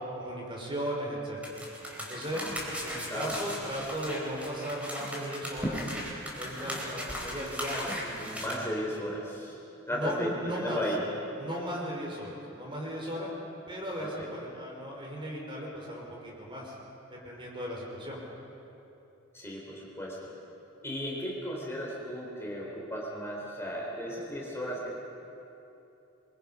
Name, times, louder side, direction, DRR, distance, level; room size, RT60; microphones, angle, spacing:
voice 1, 0.1-1.4 2.0-2.4 2.8-5.9 6.3-8.1 9.9-10.8 11.4-13.3 13.7-16.7 17.2-18.2, equal, 25° right, -2 dB, 4.7 m, -36 dB
sound 1, 1.4-8.5, equal, 5° right, 4.4 m, -37 dB
voice 2, 8.1-9.6 9.9-11.0 14.0-14.3 19.3-20.3 20.8-25.0, equal, 15° left, -4 dB, 3.9 m, -35 dB
27.5 x 23.5 x 5.6 m, 2.9 s
head